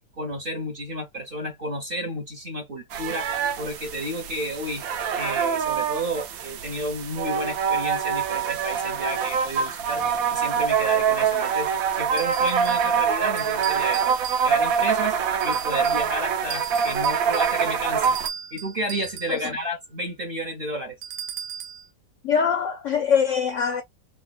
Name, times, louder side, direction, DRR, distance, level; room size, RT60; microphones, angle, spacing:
voice 1, 0.2-3.3 3.6-10.0 10.3-14.1 14.4-15.2 15.4-18.1 18.5-21.0, equal, 40° right, 0.9 m, -32 dB
sound 1, 2.9-18.3, right 7 dB, 65° right, 1.0 m, -25 dB
sound 2, 12.2-12.9 13.4-14.8 15.4-16.1 16.5-19.4 21.0-21.9, right 8 dB, 90° right, 1.3 m, -37 dB
voice 2, 22.2-23.8, left 7 dB, 70° left, 0.7 m, -23 dB
4.0 x 2.3 x 2.2 m
omnidirectional pair, 1.8 m